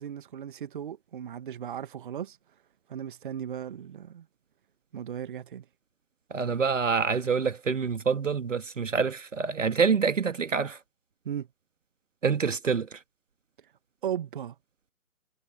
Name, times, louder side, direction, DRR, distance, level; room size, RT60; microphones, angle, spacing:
voice 1, 0.0-2.4 2.9-4.3 4.9-5.6 11.2-11.5 14.0-14.5, right 9 dB, 35° right, 1.4 m, -36 dB
voice 2, 6.3-10.8 12.2-12.9, right 5 dB, 65° right, 1.6 m, -26 dB
figure-of-eight pair, 135°, 42 cm